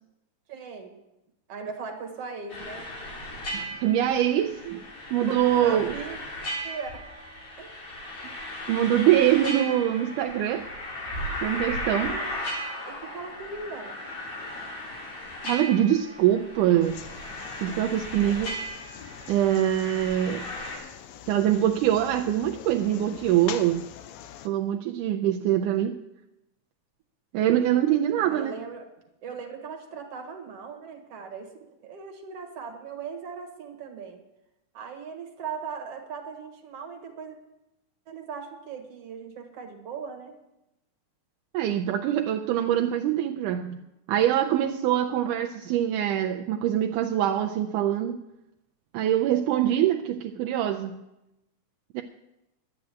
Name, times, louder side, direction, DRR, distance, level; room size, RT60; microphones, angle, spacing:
voice 1, 0.5-1.0 1.5-2.9 5.0-6.2 6.6-7.1 7.6-7.9 12.0-12.3 12.9-14.0 28.2-28.9 29.2-34.2 34.7-37.4 38.1-40.4, right 5 dB, 55° right, 2.3 m, -39 dB
sound 1, 2.5-20.8, equal, 55° left, 4.9 m, -36 dB
voice 2, 3.5-4.8 5.1-5.9 8.7-10.7 11.4-12.2 15.4-17.0 17.6-18.6 19.3-20.5 21.3-23.9 24.4-26.0 27.3-28.6 41.5-43.8 44.1-48.2 48.9-51.0 51.9-52.0, right 11 dB, 80° right, 2.1 m, -24 dB
sound 2, 16.8-24.5, left 11 dB, 80° left, 1.6 m, -44 dB
11.5 x 7.9 x 9.2 m
omnidirectional pair, 3.7 m